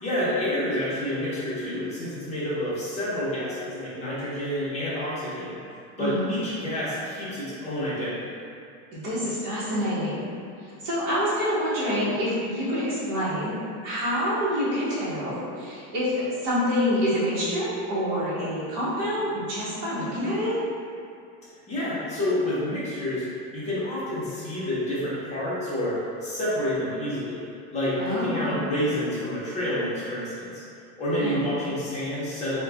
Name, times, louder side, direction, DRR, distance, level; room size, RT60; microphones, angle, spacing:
voice 1, 0.0-5.6 6.0-8.4 21.7-23.3 23.5-27.4 27.7-30.6 31.0-32.6, left 1 dB, 20° left, -10 dB, 0.9 m, -28 dB
voice 2, 6.0-6.3 9.0-10.4 10.8-13.5 13.8-20.5 28.0-28.7 31.2-31.5, equal, 50° right, -10 dB, 1.4 m, -27 dB
3.5 x 2.3 x 3.4 m, 2.5 s
cardioid pair, 165°, 37 cm